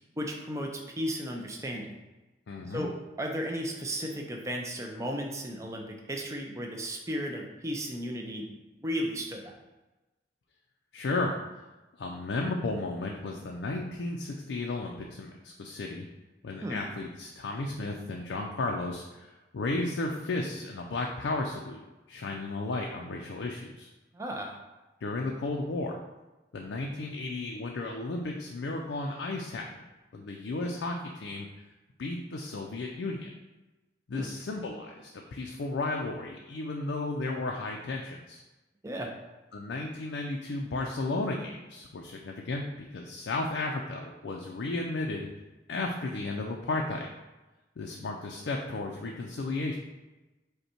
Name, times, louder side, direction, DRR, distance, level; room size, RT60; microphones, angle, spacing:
voice 1, 0.2-2.0 2.7-2.9 3.2-8.5 8.8-9.5 16.6-16.8 24.1-24.6 34.1-34.3 38.8-39.1, equal, 15° right, 1 dB, 0.5 m, -34 dB
voice 2, 2.5-2.9 10.9-11.3 12.0-16.1 16.4-21.8 22.1-23.9 25.0-26.0 26.5-29.8 30.1-31.5 32.0-33.3 34.1-38.4 39.5-42.6 42.9-45.3 45.7-47.1 47.8-49.8, left 2 dB, 85° left, 0 dB, 0.4 m, -34 dB
5.3 x 2.2 x 4.3 m, 1.1 s
head